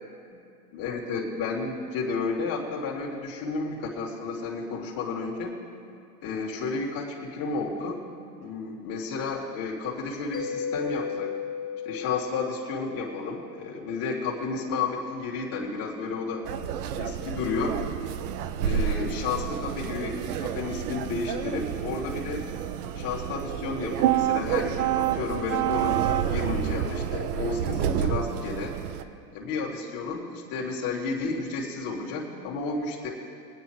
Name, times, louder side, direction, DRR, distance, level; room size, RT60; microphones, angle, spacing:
voice 1, 0.7-5.6 6.2-8.0 8.4-11.3 11.8-16.4 17.0-17.8 18.6-22.5 22.9-28.7 29.3-33.1, left 4 dB, 45° left, -2 dB, 3.1 m, -32 dB
Mallet percussion, 10.3-13.8, left 7 dB, 20° left, 1.7 m, -35 dB
sound 1, 16.4-29.0, right 10 dB, 65° right, 0.9 m, -29 dB
24.0 x 9.3 x 3.2 m, 2.4 s
hypercardioid pair, 105°, 48 cm